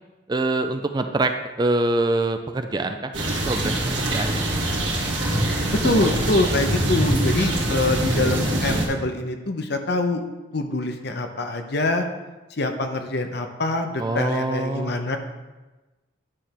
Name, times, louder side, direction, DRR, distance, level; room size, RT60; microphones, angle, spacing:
voice 1, 0.3-3.1 3.5-4.4 14.0-15.0, right 2 dB, 20° right, 7 dB, 0.4 m, -25 dB
sound 1, 3.1-8.9, right 1 dB, 75° right, 2.0 m, -23 dB
voice 2, 5.7-10.2 10.5-12.1 12.5-15.2, left 2 dB, 55° left, 6 dB, 0.7 m, -24 dB
9.9 x 3.4 x 5.8 m, 1.1 s
head